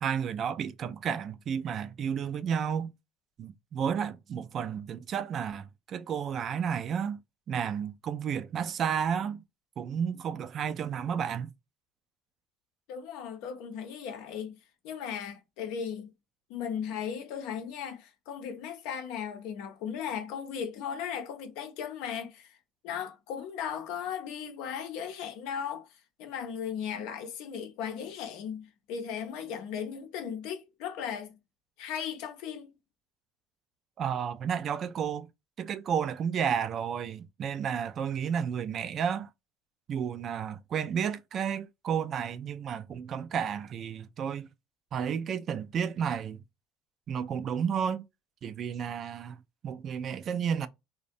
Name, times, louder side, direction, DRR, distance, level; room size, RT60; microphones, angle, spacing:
voice 1, 0.0-2.9 3.4-7.2 7.5-9.4 9.8-11.5 34.0-35.3 35.6-39.3 39.9-44.5 44.9-46.4 47.1-48.0 48.4-50.7, right 7 dB, 45° right, 0.3 m, -32 dB
voice 2, 12.9-14.6 14.8-16.1 16.5-22.6 22.8-31.4 31.8-32.7, left 8 dB, 75° left, 0.6 m, -37 dB
2.5 x 2.1 x 2.5 m
supercardioid pair, 85°, 0 cm